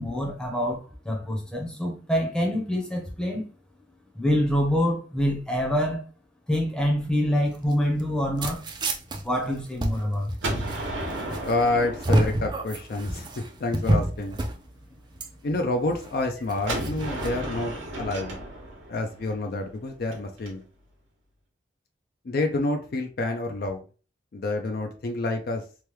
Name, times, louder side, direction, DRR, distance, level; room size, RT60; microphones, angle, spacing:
voice 1, 0.0-3.4 4.1-6.0 6.5-8.7 9.2-10.6, equal, 5° left, 0.7 m, -26 dB
sound 1, 7.4-17.3, right 1 dB, 25° right, 0.4 m, -30 dB
Gunshot gunfire, 10.4-13.2 16.7-20.5, right 1 dB, 90° right, 1.0 m, -34 dB
voice 2, 11.4-14.4 15.4-18.4 18.9-20.6 22.2-23.8 24.3-25.6, left 2 dB, 50° left, 0.4 m, -28 dB
3.0 x 2.2 x 3.2 m
head